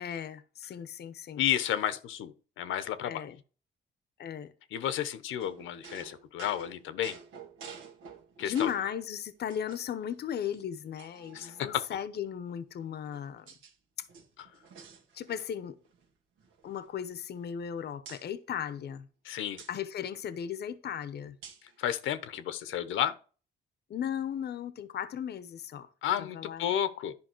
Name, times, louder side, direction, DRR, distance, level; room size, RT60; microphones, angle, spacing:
voice 1, 0.0-1.4 3.0-3.4 4.2-4.5 8.4-13.5 14.0-14.1 15.1-15.8 16.6-19.1 19.7-21.4 23.9-25.9 26.2-26.7, left 9 dB, 55° left, 0.8 m, -36 dB
voice 2, 1.4-3.2 4.7-7.2 8.4-8.7 11.3-11.8 19.2-19.6 21.8-23.1 26.0-27.1, left 10 dB, 85° left, 0.9 m, -32 dB
sound 1, 5.4-9.0 9.5-10.1 10.5-10.6 11.0-12.0 12.8-13.7 14.0-15.6 15.9-16.1 16.4-17.7 18.1-18.3 19.6-19.8 21.4-21.8, right 6 dB, 85° right, 1.9 m, -50 dB
10.5 x 5.3 x 4.6 m
cardioid pair, 90°, 20 cm